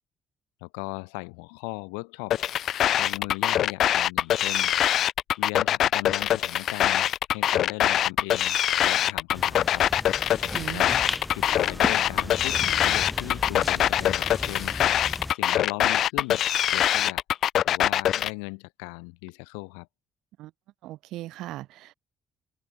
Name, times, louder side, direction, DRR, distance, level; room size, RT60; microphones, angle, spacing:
voice 1, 0.6-2.4 3.0-4.7 5.4-9.9 10.7-11.1 11.3-14.8 15.3-16.4 16.7-17.2 17.7-19.9, left 40 dB or more, 85° left, 1.5 m, -38 dB
sound 1, 2.3-18.3, left 11 dB, 65° left, 0.5 m, -23 dB
sound 2, 9.3-15.3, left 2 dB, 15° left, 2.8 m, -36 dB
voice 2, 10.4-10.9 20.4-20.5 20.8-21.9, right 16 dB, 75° right, 2.1 m, -38 dB
hypercardioid pair, 50°, 0 cm